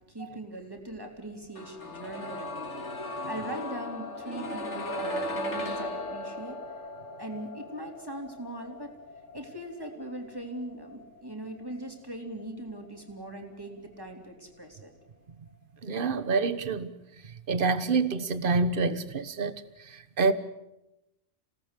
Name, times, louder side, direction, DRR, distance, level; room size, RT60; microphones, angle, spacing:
voice 1, 0.1-2.9 3.3-6.6 7.2-8.9 9.3-14.9, right 1 dB, 20° right, 3.5 m, -40 dB
sound 1, 1.5-13.4 13.7-13.8, left 1 dB, 65° left, 3.3 m, -38 dB
voice 2, 15.8-16.9 17.5-20.3, right 4 dB, 45° right, 1.3 m, -27 dB
27.5 x 17.5 x 8.4 m
omnidirectional pair, 1.3 m